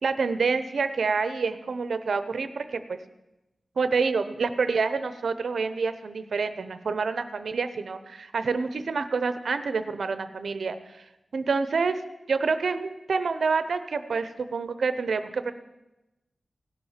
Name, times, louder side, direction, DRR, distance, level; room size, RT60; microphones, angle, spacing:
voice 1, 0.0-3.0 3.8-11.0 11.3-12.0 12.3-15.5, right 4 dB, 80° right, 11 dB, 0.8 m, -27 dB
17.0 x 7.2 x 7.4 m, 0.97 s
wide cardioid pair, 110°, 0 cm